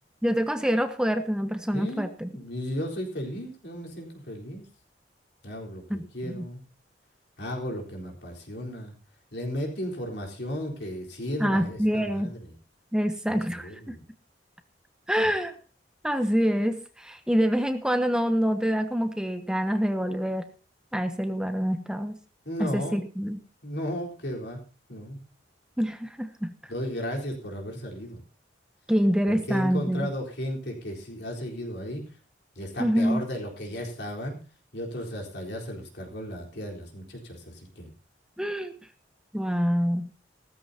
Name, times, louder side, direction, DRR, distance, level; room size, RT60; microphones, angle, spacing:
voice 1, 0.2-2.3 5.9-6.5 11.4-12.3 12.9-13.9 15.1-15.5 16.0-20.5 20.9-22.2 22.6-23.4 25.8-26.5 28.9-30.1 32.8-33.2 38.4-38.7 39.3-40.1, equal, 5° right, 8 dB, 0.8 m, -26 dB
voice 2, 1.7-4.7 5.4-6.6 7.4-8.9 9.3-12.6 13.3-14.0 22.4-23.0 23.6-24.6 24.9-25.2 26.7-28.2 29.3-32.1 32.6-34.4 34.7-37.9, equal, 65° left, 0 dB, 4.0 m, -35 dB
16.5 x 14.0 x 2.8 m, 0.36 s
head